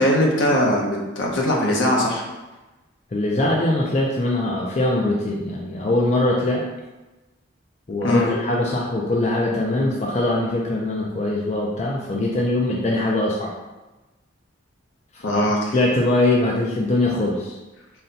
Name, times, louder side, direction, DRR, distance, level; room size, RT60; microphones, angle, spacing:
voice 1, 0.0-2.3 8.0-8.3 15.2-15.6, left 1 dB, 65° left, -1 dB, 0.8 m, -20 dB
voice 2, 3.1-6.6 7.9-13.5 15.1-15.4 15.7-17.6, left 2 dB, 35° left, -3 dB, 0.4 m, -22 dB
4.0 x 2.2 x 3.8 m, 1.1 s
head